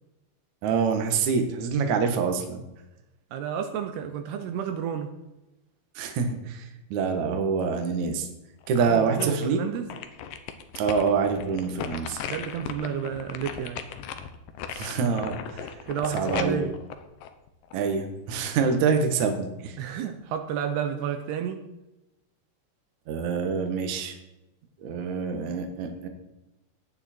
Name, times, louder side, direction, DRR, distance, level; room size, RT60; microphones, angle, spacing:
voice 1, 0.6-2.6 6.0-8.3 8.7-9.6 10.8-12.2 14.7-15.7 16.1-16.6 17.7-19.8 23.1-24.2 24.8-26.1, right 5 dB, 55° right, 5 dB, 2.4 m, -26 dB
voice 2, 3.3-5.2 8.8-9.9 12.3-13.8 15.9-16.8 19.8-21.6, right 8 dB, 75° right, 7 dB, 2.8 m, -31 dB
sound 1, 8.6-9.5 9.9-18.0 18.4-18.5, left 8 dB, 70° left, 2.3 m, -37 dB
17.0 x 9.9 x 4.5 m, 0.97 s
omnidirectional pair, 4.8 m